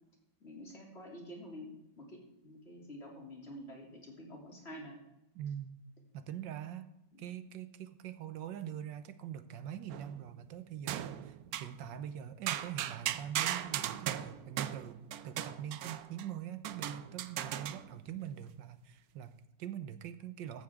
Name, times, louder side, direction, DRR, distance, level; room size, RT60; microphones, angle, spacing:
voice 1, 0.4-5.0 7.1-7.2, equal, 35° left, -1 dB, 3.3 m, -48 dB
voice 2, 5.3-5.8 6.1-6.9 7.2-15.0 15.2-20.6, right 9 dB, 85° right, 11 dB, 1.5 m, -43 dB
sound 1, 9.9-10.4 10.9-11.8 12.5-16.3 16.6-18.0, right 11 dB, 70° right, 0.9 m, -38 dB
15.5 x 11.5 x 3.6 m, 0.87 s
omnidirectional pair, 2.0 m